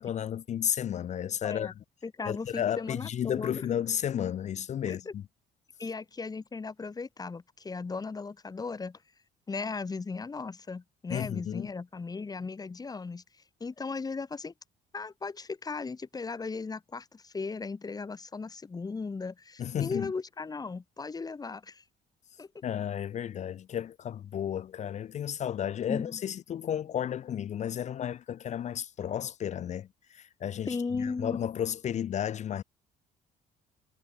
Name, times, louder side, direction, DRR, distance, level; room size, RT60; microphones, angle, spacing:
voice 1, 0.0-1.7 2.3-5.2 11.1-11.7 19.6-20.1 22.6-29.9 30.1-32.6, left 9 dB, 45° left, 0.6 m, -33 dB
voice 2, 2.0-3.7 4.9-5.1 5.8-9.0 9.5-13.2 13.6-14.5 14.9-21.8 22.4-22.5 25.9-26.2 30.7-31.4, left 4 dB, 20° left, 2.3 m, -37 dB
cardioid pair, 110°, 17 cm